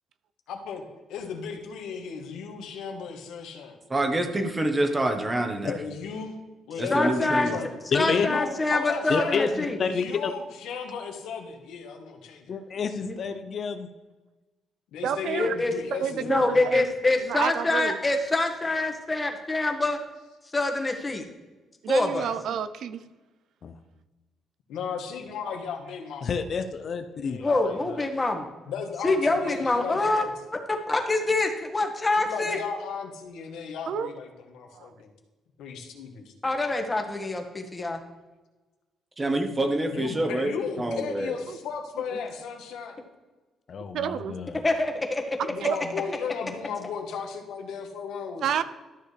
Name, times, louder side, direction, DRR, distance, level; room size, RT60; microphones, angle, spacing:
voice 1, 0.5-3.8 5.6-6.4 6.7-7.7 7.9-9.5 9.8-12.5 14.9-16.9 24.7-26.3 27.1-28.1 28.7-30.3 32.1-35.1 35.6-36.3 39.9-43.0 45.4-48.6, left 6 dB, 85° left, 4 dB, 1.4 m, -35 dB
voice 2, 3.9-5.8 6.8-7.5 39.2-41.4, right 1 dB, 25° right, 5 dB, 1.2 m, -27 dB
voice 3, 6.9-7.5 7.9-9.8 13.0-13.2 15.4-15.7 16.2-20.0 20.5-21.2 21.9-22.3 27.4-28.5 29.0-30.2 30.7-32.6 36.4-38.0 44.6-45.4, left 2 dB, 20° left, 3 dB, 1.4 m, -25 dB
voice 4, 7.9-8.3 9.1-10.3 12.5-13.9 23.6-23.7 26.2-27.4 43.7-44.6, left 5 dB, 55° left, 9 dB, 0.6 m, -29 dB
voice 5, 15.0-15.5 15.9-16.9 17.3-18.0 21.8-23.0 33.9-34.1 34.7-34.9 41.5-41.6 43.9-44.3 45.4-45.8 48.4-48.6, right 8 dB, 70° right, 13 dB, 0.5 m, -29 dB
12.5 x 6.6 x 3.3 m, 1.2 s
cardioid pair, 90°, 0 cm